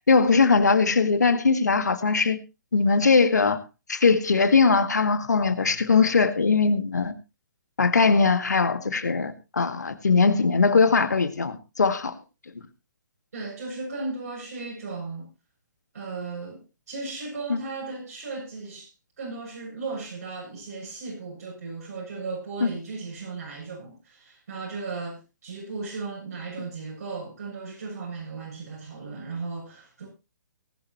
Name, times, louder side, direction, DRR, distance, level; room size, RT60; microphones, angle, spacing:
voice 1, 0.1-2.4 2.7-3.6 3.9-7.1 7.8-12.1 17.5-17.6 22.6-22.7, left 4 dB, 65° left, 1.9 m, -20 dB
voice 2, 13.3-15.3 15.9-16.6 16.9-18.9 19.2-30.1, right 3 dB, 55° right, 7.3 m, -36 dB
19.0 x 11.5 x 3.0 m
figure-of-eight pair, 130°, 10 cm